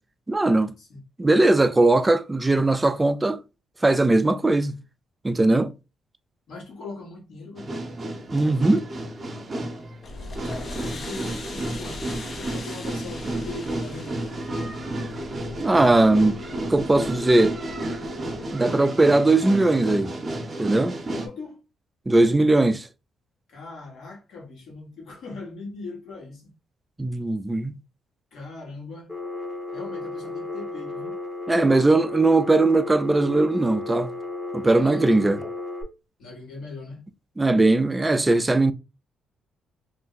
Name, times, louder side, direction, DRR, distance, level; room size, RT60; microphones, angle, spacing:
voice 1, 0.3-0.7 1.2-3.4 3.8-4.8 5.2-5.7 8.3-8.9 15.6-17.6 18.5-20.1 20.6-21.0 22.1-22.9 27.0-27.8 31.5-34.1 34.5-35.4 37.4-38.7, right 2 dB, 15° right, 0.3 m, -19 dB
voice 2, 6.5-7.7 10.9-14.2 21.0-21.6 23.5-26.5 28.3-29.1 29.7-31.1 31.5-32.0 34.6-35.5 36.2-37.0, left 3 dB, 70° left, 1.2 m, -40 dB
sound 1, 7.6-21.3, right 1 dB, 35° right, 0.7 m, -32 dB
sound 2, 10.0-18.5, left 3 dB, 50° left, 0.7 m, -40 dB
Telephone, 29.1-35.8, left 3 dB, 10° left, 0.7 m, -34 dB
2.5 x 2.1 x 3.8 m
cardioid pair, 90°, 0 cm